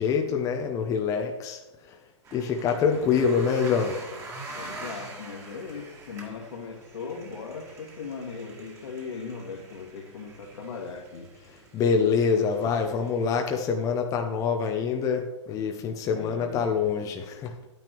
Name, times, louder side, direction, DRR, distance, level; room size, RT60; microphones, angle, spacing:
voice 1, 0.0-2.0 2.3-4.1 11.7-17.5, left 6 dB, 20° left, 3 dB, 0.8 m, -25 dB
sound 1, 2.2-13.7, right 2 dB, 20° right, 1.9 m, -45 dB
voice 2, 2.7-3.1 4.5-11.3 16.1-16.7, left 5 dB, 70° left, 1 dB, 2.1 m, -39 dB
10.0 x 9.2 x 3.0 m, 1.0 s
hypercardioid pair, 125°, 16 cm